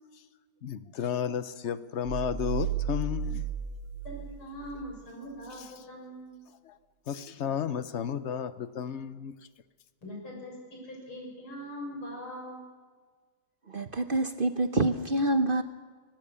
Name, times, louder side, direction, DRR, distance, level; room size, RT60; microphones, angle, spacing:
voice 1, 0.6-3.5 5.5-5.7 6.6-6.8 7.1-9.4, left 8 dB, 70° left, 13 dB, 0.6 m, -33 dB
sound 1, 2.0-4.9, right 7 dB, 70° right, 2.4 m, -34 dB
voice 2, 4.0-6.4 10.0-12.6, equal, 90° left, 0 dB, 7.8 m, -42 dB
voice 3, 13.7-15.6, right 2 dB, 45° right, 8 dB, 0.7 m, -27 dB
24.0 x 18.0 x 6.9 m, 1.5 s
omnidirectional pair, 2.2 m